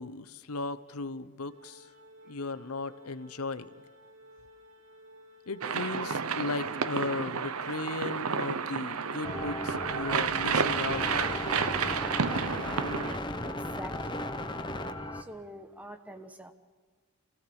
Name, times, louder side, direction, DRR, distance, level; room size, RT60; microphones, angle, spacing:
voice 1, 0.0-1.9 2.3-3.7 5.5-11.5, left 3 dB, 90° left, 14 dB, 1.0 m, -36 dB
Organ, 1.5-12.4, equal, 60° right, 3.4 m, -55 dB
sound 1, 5.6-13.2, right 6 dB, 85° right, 0.8 m, -31 dB
sound 2, 9.2-15.2, left 1 dB, 20° left, 1.1 m, -36 dB
voice 2, 13.4-14.3 15.1-16.5, right 1 dB, 5° right, 7 dB, 1.2 m, -45 dB
26.5 x 16.5 x 7.1 m, 1.5 s
head